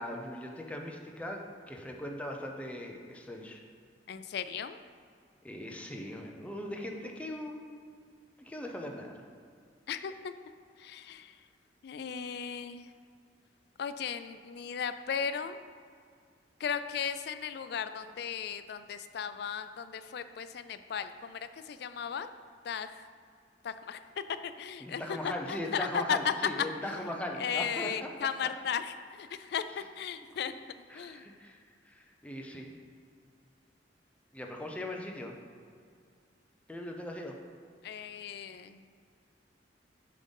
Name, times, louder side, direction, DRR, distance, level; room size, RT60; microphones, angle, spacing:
voice 1, 0.0-1.4 1.7-3.6 5.4-7.7 8.4-9.1 24.8-28.1 30.9-32.7 34.3-35.3 36.7-37.4, left 1 dB, 5° left, 1 dB, 0.6 m, -39 dB
voice 2, 4.1-4.8 9.9-10.3 10.8-11.4 11.8-12.9 13.8-15.6 16.6-22.3 22.6-23.0 23.6-24.0 24.4-26.3 26.8-27.1 27.4-30.5 30.9-31.3 37.8-38.8, left 7 dB, 65° left, 11 dB, 0.3 m, -36 dB
7.5 x 3.8 x 5.3 m, 2.2 s
head